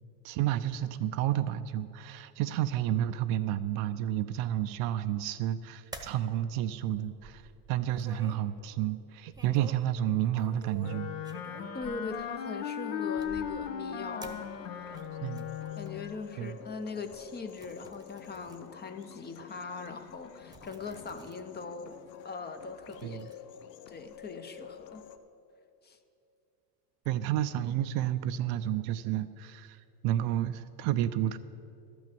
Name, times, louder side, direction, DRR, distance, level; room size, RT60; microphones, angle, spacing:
voice 1, 0.2-7.4 7.7-11.1 15.2-15.5 16.4-16.6 23.0-23.3 27.1-31.4, right 12 dB, 55° right, 12 dB, 0.5 m, -31 dB
sound 1, 5.9-6.2 6.8-8.4 9.3-9.9 10.2-12.5 13.1-13.8 14.2-16.1 16.6-16.7 17.1-18.7 19.0-19.1 20.1-20.2 20.4-21.4 21.7-21.8 22.9-23.3, right 2 dB, 10° right, 1.0 m, -50 dB
Wind instrument woodwind instrument, 10.8-16.1, left 8 dB, 65° left, 1.1 m, -37 dB
voice 2, 11.7-15.0 15.8-22.0 22.2-23.4 23.9-25.0 25.8-26.0, left 4 dB, 20° left, 8 dB, 0.6 m, -41 dB
sound 2, 14.0-25.2, left 9 dB, 90° left, 0.8 m, -50 dB
12.0 x 6.1 x 7.5 m, 2.7 s
hypercardioid pair, 95°, 48 cm